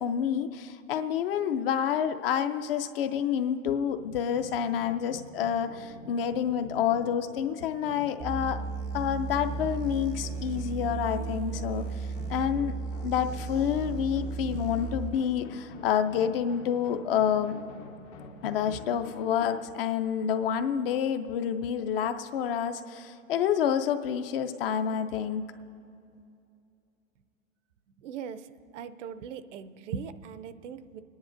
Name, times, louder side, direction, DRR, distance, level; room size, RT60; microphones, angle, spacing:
voice 1, 0.0-8.6 8.9-12.8 13.0-17.6 18.4-25.4, left 8 dB, 45° left, 10 dB, 0.5 m, -28 dB
sound 1, 4.0-19.7, left 3 dB, 75° left, 1.2 m, -47 dB
sound 2, 8.2-15.1, right 5 dB, 15° right, 0.4 m, -35 dB
voice 2, 28.0-28.5 28.7-31.0, right 7 dB, 65° right, 13 dB, 0.6 m, -39 dB
27.5 x 10.0 x 2.6 m, 2.6 s
supercardioid pair, 155°, 40 cm